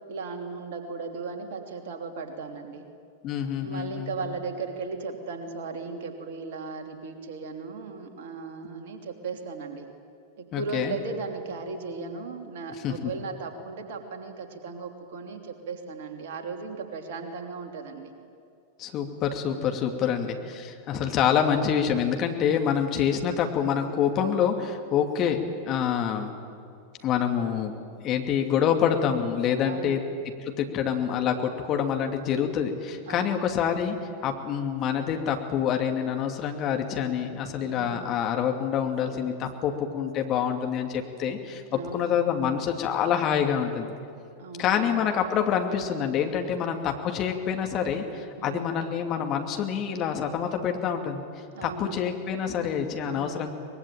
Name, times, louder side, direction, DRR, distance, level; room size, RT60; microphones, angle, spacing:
voice 1, 0.1-2.9 3.6-9.9 10.4-18.1 20.0-20.3 25.2-25.5 29.6-30.0 33.1-33.4 37.6-38.1 41.7-42.1 44.4-44.9 46.4-46.7 48.4-48.8 51.5-52.1 53.0-53.5, right 4 dB, 55° right, 4 dB, 3.1 m, -37 dB
voice 2, 3.2-4.3 10.5-11.0 12.8-13.0 18.8-26.3 27.0-27.8 28.0-30.0 30.4-43.9 44.6-51.2 51.6-53.5, left 8 dB, 35° left, 4 dB, 2.7 m, -27 dB
24.0 x 21.5 x 9.1 m, 2.4 s
figure-of-eight pair, 90°, 0 cm